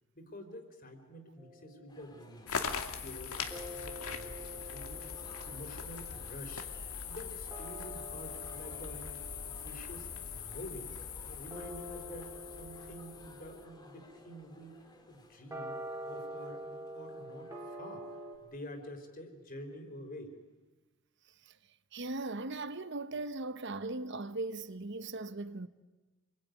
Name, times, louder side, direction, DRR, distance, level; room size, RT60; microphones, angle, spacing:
voice 1, 0.1-2.5 3.0-6.7 7.0-10.9 11.2-14.8 15.1-18.1 18.4-20.3, equal, 40° left, 4.0 m, -48 dB
sound 1, 1.4-2.7 3.5-18.4, equal, 15° right, 3.2 m, -48 dB
sound 2, 1.9-18.7, left 1 dB, 20° left, 2.6 m, -59 dB
sound 3, 2.5-13.6, left 6 dB, 85° left, 2.4 m, -42 dB
voice 2, 21.9-25.7, right 2 dB, 55° right, 1.1 m, -38 dB
28.0 x 22.0 x 9.3 m
head